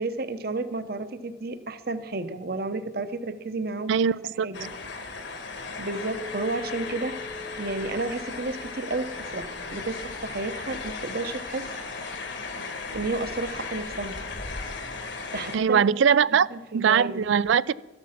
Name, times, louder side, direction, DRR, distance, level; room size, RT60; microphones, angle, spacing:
voice 1, 0.0-4.0 4.4-4.7 5.8-7.2 7.6-11.7 12.9-14.2 15.3-15.9 16.3-17.2, right 3 dB, 50° right, 11 dB, 0.9 m, -32 dB
voice 2, 3.9-4.5 15.5-16.5 16.7-17.7, right 7 dB, 75° right, 20 dB, 0.4 m, -21 dB
sound 1, 4.5-15.6, left 4 dB, 65° left, 1.5 m, -36 dB
Chink clink, 5.9-11.1, left 3 dB, 5° left, 0.8 m, -44 dB
13.5 x 11.5 x 5.8 m, 1.1 s
head